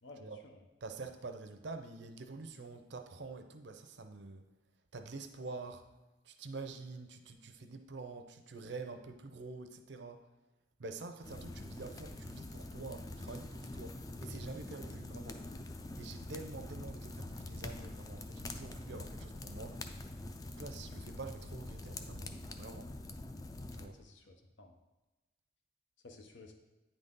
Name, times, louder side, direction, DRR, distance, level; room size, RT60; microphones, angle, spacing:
voice 1, 0.0-0.6 23.8-24.8 26.0-26.5, left 2 dB, 85° left, 4 dB, 0.7 m, -55 dB
voice 2, 0.8-4.4 4.9-5.8 6.2-10.2 10.8-15.4 16.0-19.8 20.5-22.9 23.7-24.0, right 3 dB, 70° right, 7 dB, 0.6 m, -47 dB
sound 1, 11.2-23.9, left 2 dB, 20° left, 0.3 m, -45 dB
9.0 x 4.0 x 3.7 m, 1.1 s
head